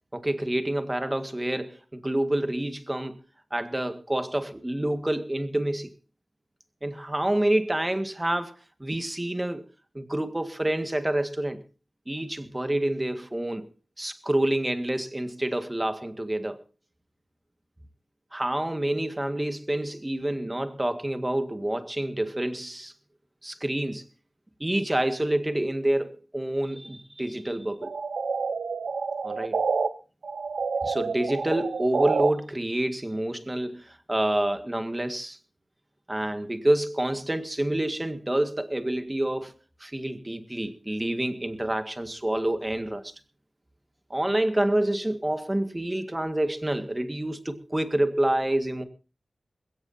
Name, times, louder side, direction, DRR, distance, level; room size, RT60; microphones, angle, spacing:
voice 1, 0.1-3.2 3.5-5.9 6.8-8.6 8.8-9.6 10.0-11.6 12.1-13.6 14.0-16.6 18.3-22.9 23.4-24.0 24.6-27.9 29.2-29.6 30.8-35.4 36.1-39.5 39.8-43.1 44.1-48.8, right 1 dB, 20° right, 1.8 m, -28 dB
sound 1, 27.8-29.9 30.2-32.3, right 4 dB, 85° right, 0.8 m, -28 dB
21.0 x 16.5 x 2.8 m
cardioid pair, 45°, 0 cm